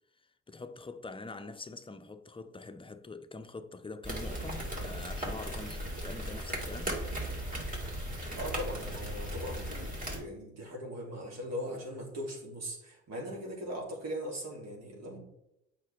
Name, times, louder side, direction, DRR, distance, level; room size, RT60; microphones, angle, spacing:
voice 1, 0.5-7.1, left 3 dB, 15° left, 0.6 m, -44 dB
sound 1, 4.0-10.2, equal, 25° right, 2.7 m, -37 dB
voice 2, 8.4-15.2, equal, 60° right, 2.9 m, -40 dB
8.2 x 5.9 x 3.5 m
cardioid pair, 90°, 30 cm